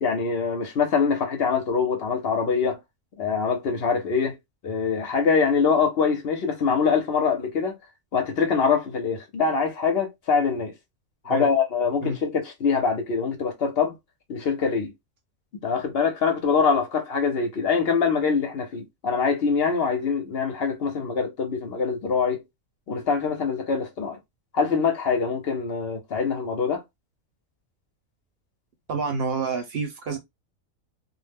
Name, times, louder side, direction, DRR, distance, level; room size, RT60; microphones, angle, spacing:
voice 1, 0.0-2.8 3.2-4.4 4.6-7.8 8.1-10.7 11.2-14.0 14.3-14.9 15.6-22.4 22.9-24.2 24.5-26.8, left 5 dB, 60° left, 0.8 m, -24 dB
voice 2, 28.9-30.2, right 4 dB, 55° right, 0.8 m, -28 dB
2.4 x 2.1 x 3.2 m
omnidirectional pair, 1.4 m